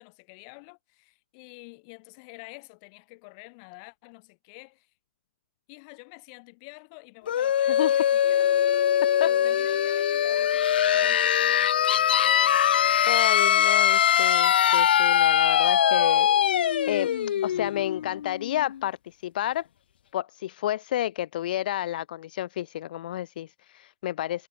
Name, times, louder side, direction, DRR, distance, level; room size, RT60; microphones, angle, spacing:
voice 1, 0.0-4.9 5.7-8.7 9.2-13.1 13.5-13.6, left 33 dB, 40° left, 5.0 m, -48 dB
sound 1, 7.3-18.8, left 10 dB, 80° left, 0.7 m, -22 dB
voice 2, 13.1-17.1 17.4-19.7 20.1-24.5, left 13 dB, 65° left, 1.3 m, -31 dB
hypercardioid pair, 150°, 5 cm